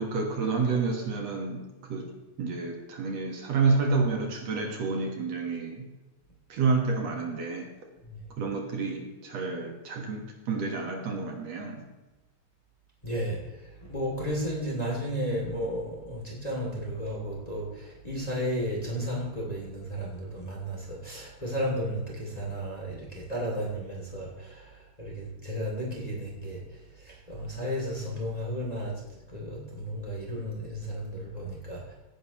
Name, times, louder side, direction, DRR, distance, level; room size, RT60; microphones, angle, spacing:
voice 1, 0.0-5.9 6.5-7.7 8.4-11.8, right 4 dB, 65° right, 2 dB, 2.5 m, -29 dB
voice 2, 13.0-29.0 29.3-31.9, equal, 15° left, -3 dB, 2.4 m, -33 dB
17.5 x 10.0 x 3.0 m, 1.1 s
omnidirectional pair, 3.3 m